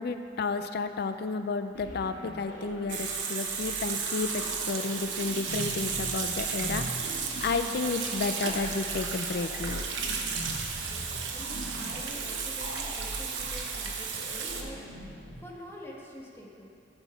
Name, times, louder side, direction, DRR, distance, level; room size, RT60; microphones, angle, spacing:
voice 1, 0.0-9.8, left 4 dB, 60° left, 9 dB, 0.4 m, -32 dB
sound 1, 1.8-15.4, equal, 80° left, 1.8 m, -41 dB
Water tap faucet / Sink (filling or washing), 2.9-14.6, right 6 dB, 85° right, 1.0 m, -34 dB
voice 2, 10.8-16.7, equal, 15° left, -3 dB, 1.3 m, -47 dB
13.0 x 4.5 x 5.6 m, 2.4 s
head